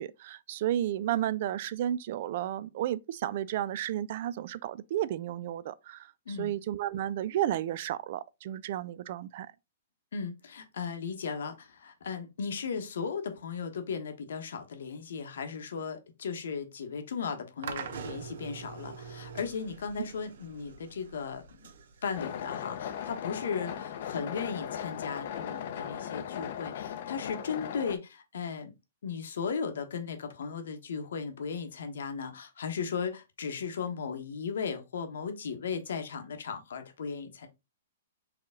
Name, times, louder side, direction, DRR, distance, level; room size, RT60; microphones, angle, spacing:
voice 1, 0.0-6.1 6.4-9.5, right 12 dB, 45° right, 0.3 m, -32 dB
voice 2, 10.1-21.7 22.0-28.7 29.0-37.5, left 6 dB, 75° left, 1.2 m, -36 dB
sound 1, 17.6-24.7, right 6 dB, 70° right, 0.8 m, -45 dB
sound 2, 22.2-28.0, left 9 dB, 50° left, 0.6 m, -38 dB
4.7 x 3.0 x 3.7 m
hypercardioid pair, 160°, 0 cm